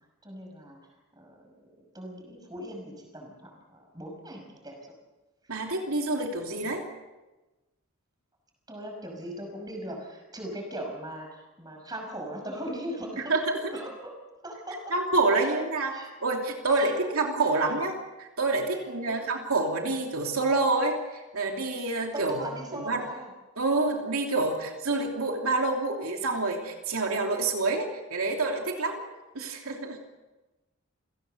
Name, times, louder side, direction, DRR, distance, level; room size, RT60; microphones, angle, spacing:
voice 1, 0.2-0.8 1.2-1.5 1.9-4.9 8.7-13.4 13.7-14.1 14.4-14.9 15.4-15.6 15.9-16.1 16.7-17.2 18.7-19.2 22.1-23.3, right 1 dB, 20° right, 2 dB, 5.7 m, -39 dB
voice 2, 5.5-6.8 13.3-13.7 14.9-15.9 16.2-22.4 22.7-23.0 23.6-29.0 29.3-30.0, right 3 dB, 80° right, 2 dB, 2.9 m, -27 dB
28.0 x 17.5 x 6.8 m, 1.1 s
head